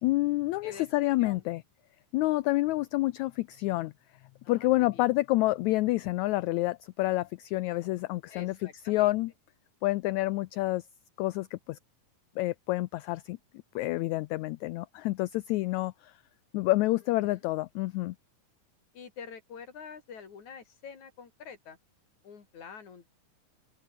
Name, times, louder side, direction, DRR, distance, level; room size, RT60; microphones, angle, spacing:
voice 1, 0.0-1.6 2.1-3.9 4.5-9.3 9.8-10.8 11.2-11.8 12.4-13.4 13.7-16.1 16.5-18.1, left 18 dB, 80° left, 1.7 m, -28 dB
voice 2, 4.4-5.1 8.3-9.1 17.2-17.4 18.9-21.8 22.2-23.1, left 6 dB, 60° left, 4.3 m, -47 dB
open air
omnidirectional pair, 3.8 m